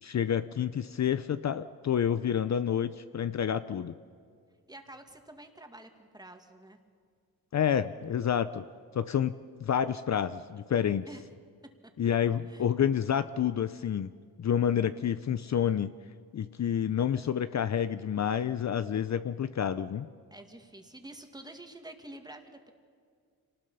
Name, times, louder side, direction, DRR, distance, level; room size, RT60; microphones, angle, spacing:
voice 1, 0.0-3.9 7.5-8.6 8.9-11.0 12.0-14.1 14.4-15.9 16.3-20.1, left 9 dB, 50° left, 13 dB, 0.6 m, -29 dB
voice 2, 4.7-6.8 11.1-11.2 12.5-12.7 20.3-22.7, right 1 dB, 10° right, 5 dB, 2.1 m, -48 dB
26.5 x 19.5 x 5.6 m, 2.1 s
wide cardioid pair, 105°, 36 cm